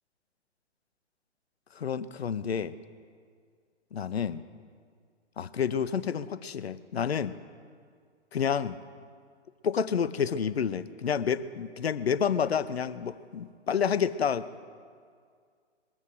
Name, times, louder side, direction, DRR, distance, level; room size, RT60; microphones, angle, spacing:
voice 1, 1.8-2.7 3.9-4.4 5.4-7.4 8.3-8.8 9.6-14.4, left 7 dB, 60° left, 14 dB, 0.7 m, -29 dB
21.5 x 7.3 x 6.4 m, 2.1 s
figure-of-eight pair, 125°, 35 cm